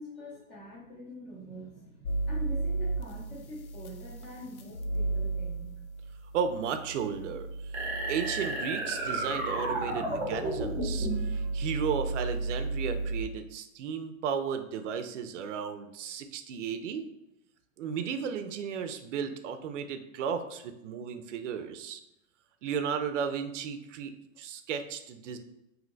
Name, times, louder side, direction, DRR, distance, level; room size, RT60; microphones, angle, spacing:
voice 1, 0.0-5.7, left 1 dB, 20° left, -4 dB, 0.6 m, -45 dB
sound 1, 2.0-13.2, right 2 dB, 90° left, 0.6 m, -35 dB
voice 2, 6.3-17.1 17.8-22.0 22.6-25.4, right 7 dB, 60° right, 8 dB, 0.5 m, -34 dB
sound 2, 7.7-11.3, right 2 dB, 20° right, 0.7 m, -32 dB
2.7 x 2.1 x 3.8 m, 0.84 s
hypercardioid pair, 155°, 41 cm